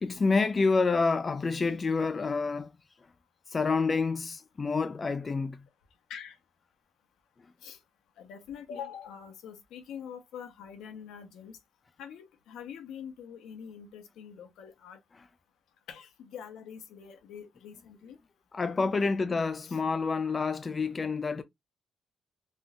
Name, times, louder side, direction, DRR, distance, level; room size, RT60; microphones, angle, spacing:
voice 1, 0.0-2.7 3.5-5.6 18.5-21.4, left 4 dB, 35° left, 0.4 m, -28 dB
voice 2, 8.2-11.6 12.0-15.0 15.9-18.2 19.6-19.8, left 8 dB, 85° left, 0.8 m, -44 dB
3.6 x 2.6 x 2.3 m
cardioid pair, 90°, 0 cm